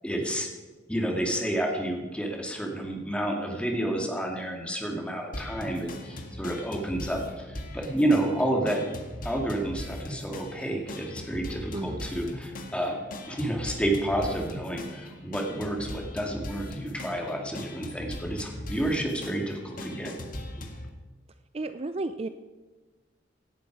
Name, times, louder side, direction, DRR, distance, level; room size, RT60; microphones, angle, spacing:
voice 1, 0.0-0.5 0.9-8.8 9.2-12.9 13.3-20.1, right 1 dB, 5° left, 1 dB, 2.2 m, -30 dB
sound 1, 5.3-20.9, left 1 dB, 50° left, 1.7 m, -39 dB
voice 2, 11.7-12.1 21.5-22.3, right 2 dB, 35° right, 10 dB, 0.5 m, -33 dB
17.5 x 11.5 x 4.7 m, 1.3 s
head